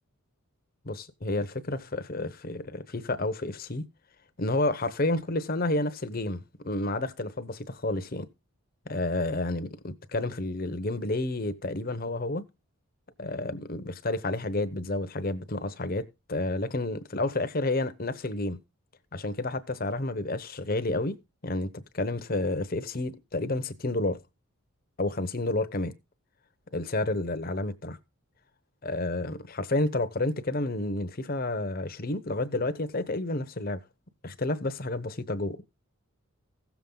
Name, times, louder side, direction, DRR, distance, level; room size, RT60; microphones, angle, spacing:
voice 1, 0.9-3.8 4.4-8.3 8.9-12.5 13.2-18.6 19.1-24.2 25.0-25.9 26.7-28.0 28.8-33.8 34.2-35.6, left 2 dB, 40° left, 0.9 m, -30 dB
15.5 x 7.1 x 3.9 m
head